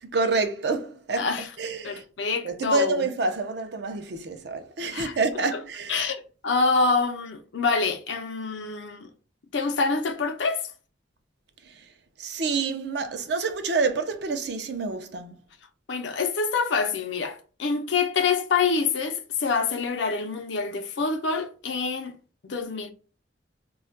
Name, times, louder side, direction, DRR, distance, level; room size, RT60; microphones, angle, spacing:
voice 1, 0.1-1.3 1.6-2.0 2.4-6.0 12.2-15.3, right 3 dB, 65° right, 0.5 m, -27 dB
voice 2, 1.2-1.5 1.8-3.0 4.9-5.2 5.5-5.6 5.9-9.1 9.5-10.7 15.9-22.2 22.4-22.9, left 4 dB, 80° left, 0.5 m, -26 dB
2.3 x 2.1 x 3.8 m
head